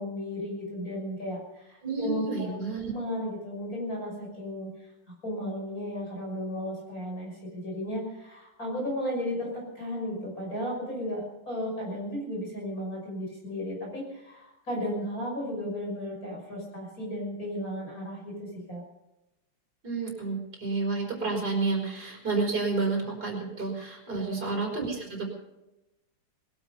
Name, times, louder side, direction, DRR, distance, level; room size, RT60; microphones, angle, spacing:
voice 1, 0.0-2.5 2.9-4.9 5.2-18.8 24.1-24.4, equal, 40° left, -3 dB, 6.5 m, -34 dB
voice 2, 1.8-2.9 19.8-25.3, right 4 dB, 45° right, -1 dB, 5.1 m, -30 dB
20.5 x 12.5 x 5.4 m, 0.95 s
omnidirectional pair, 2.3 m